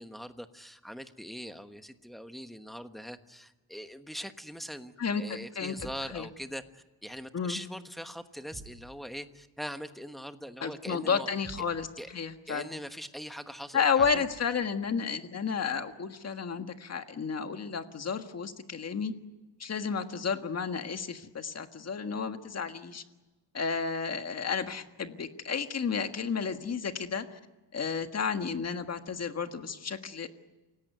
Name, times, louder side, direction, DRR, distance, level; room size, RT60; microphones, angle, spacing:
voice 1, 0.0-11.3 12.0-12.1 12.5-14.2, equal, ahead, 8 dB, 1.2 m, -42 dB
voice 2, 5.0-5.7 6.1-6.3 7.3-7.6 10.6-12.7 13.7-19.1 19.6-23.0 23.5-27.4 27.7-30.3, left 6 dB, 35° left, 8 dB, 1.6 m, -32 dB
sound 1, 5.8-6.1 8.5-8.9 11.4-11.8 14.0-14.3, right 2 dB, 15° right, 6.5 m, -47 dB
28.5 x 17.0 x 9.3 m, 1.2 s
cardioid pair, 145°, 43 cm